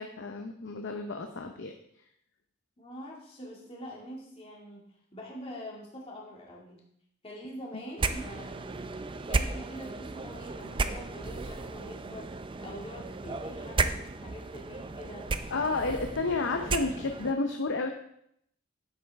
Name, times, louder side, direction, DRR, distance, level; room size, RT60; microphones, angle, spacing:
voice 1, 0.0-1.7 7.7-7.8 15.5-17.9, left 3 dB, 60° left, 5 dB, 0.7 m, -31 dB
voice 2, 2.8-4.8 5.1-6.8 7.2-8.7 9.3-12.3 12.6-15.3, equal, 30° left, -3 dB, 2.1 m, -44 dB
sound 1, 8.0-17.3, right 3 dB, 25° right, 0.5 m, -34 dB
10.5 x 7.9 x 3.5 m, 0.72 s
head